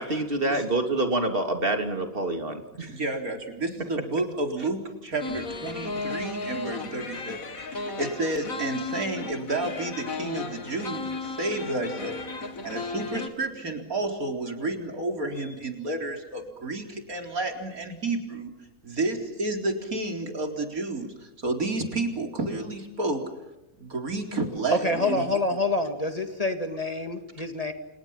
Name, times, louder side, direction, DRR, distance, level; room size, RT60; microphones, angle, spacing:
voice 1, 0.0-3.0, right 2 dB, 40° right, 5 dB, 3.3 m, -27 dB
voice 2, 2.9-7.4 7.7-12.2 12.6-18.5 18.8-23.2 23.8-25.2, right 2 dB, 85° right, 4 dB, 4.5 m, -31 dB
sound 1, 5.2-13.3, left 3 dB, 75° left, 2.7 m, -35 dB
voice 3, 24.7-27.7, left 2 dB, 25° left, 6 dB, 2.4 m, -27 dB
29.0 x 29.0 x 5.8 m, 0.98 s
omnidirectional pair, 1.5 m